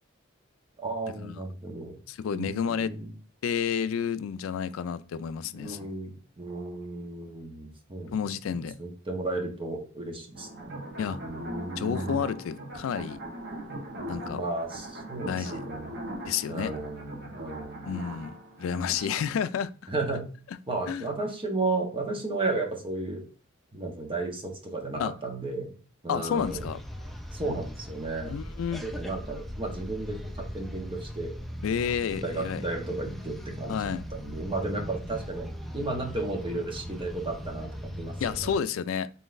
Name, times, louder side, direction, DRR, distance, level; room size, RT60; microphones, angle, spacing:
voice 1, 0.8-2.0 2.3-3.1 5.5-10.7 11.2-12.2 14.2-15.9 16.5-18.0 18.9-19.3 19.9-20.2 20.7-23.2 23.7-25.7 26.0-26.7 27.3-28.3 28.7-31.3 32.2-35.5 35.7-38.5, right 2 dB, 25° right, 1.0 m, -34 dB
voice 2, 2.1-2.9 3.4-5.9 8.1-8.8 11.0-11.2 11.8-13.2 14.1-14.4 15.3-15.6 16.3-16.7 17.8-19.7 20.9-21.1 25.0-25.1 26.1-26.8 28.3-28.8 31.6-32.6 33.7-34.0 38.2-39.1, left 7 dB, 80° left, 0.3 m, -30 dB
sound 1, 10.3-19.2, right 1 dB, 55° right, 1.0 m, -40 dB
sound 2, 26.4-38.6, equal, ahead, 0.4 m, -39 dB
4.0 x 3.8 x 2.5 m
head